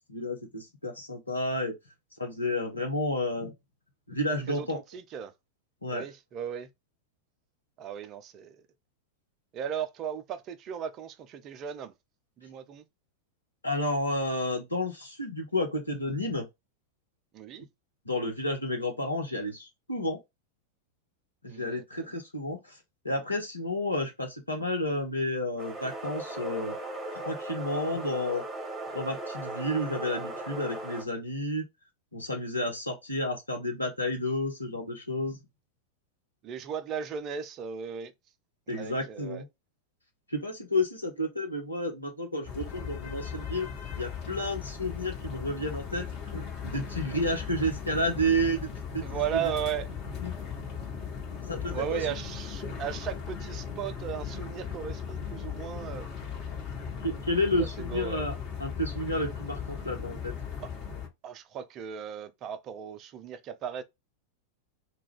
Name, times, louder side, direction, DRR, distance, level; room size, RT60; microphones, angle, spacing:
voice 1, 0.1-1.7 2.2-3.5 4.1-4.8 5.8-6.0 13.6-16.5 18.1-20.2 21.4-22.7 23.0-26.8 27.1-28.4 28.9-31.6 32.1-35.4 38.7-39.5 40.3-43.7 43.9-46.0 46.3-49.0 49.3-49.4 50.2-50.3 51.5-52.0 57.0-58.3 58.6-60.3, left 1 dB, 85° left, 0.9 m, -31 dB
voice 2, 4.5-5.3 5.9-6.7 7.8-8.6 9.5-11.9 12.4-12.8 17.3-17.7 21.5-22.1 36.4-38.1 38.7-39.4 49.0-49.9 51.7-56.1 57.6-58.2 60.6-60.7 61.2-63.8, right 8 dB, 35° right, 0.4 m, -36 dB
sound 1, 25.6-31.0, right 2 dB, 15° right, 0.8 m, -38 dB
sound 2, 42.4-61.1, left 7 dB, 40° left, 1.2 m, -38 dB
2.3 x 2.2 x 3.4 m
figure-of-eight pair, 90°, 0 cm